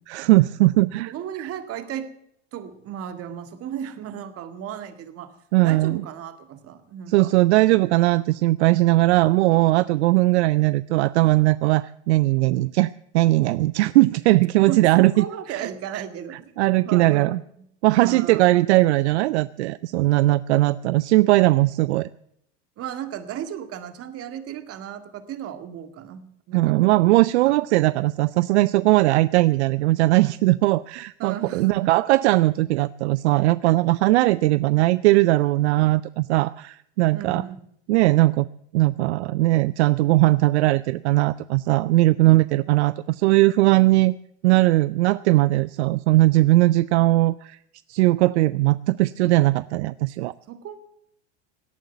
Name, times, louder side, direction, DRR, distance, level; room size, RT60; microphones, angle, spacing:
voice 1, 0.1-1.1 1.4-1.5 5.5-6.0 7.1-16.0 16.6-17.4 17.8-22.1 26.5-37.4 37.9-38.5 38.7-44.1 44.4-47.6 47.9-50.3, right 18 dB, 75° right, 18 dB, 0.5 m, -19 dB
voice 2, 1.1-2.1 2.5-5.3 5.6-7.3 14.7-16.5 16.8-17.3 18.0-18.5 22.8-27.0 27.5-27.6 31.2-31.8 37.1-37.6 50.5-50.8, right 9 dB, 45° right, 10 dB, 2.1 m, -35 dB
17.5 x 9.3 x 8.2 m, 0.72 s
hypercardioid pair, 100°, 34 cm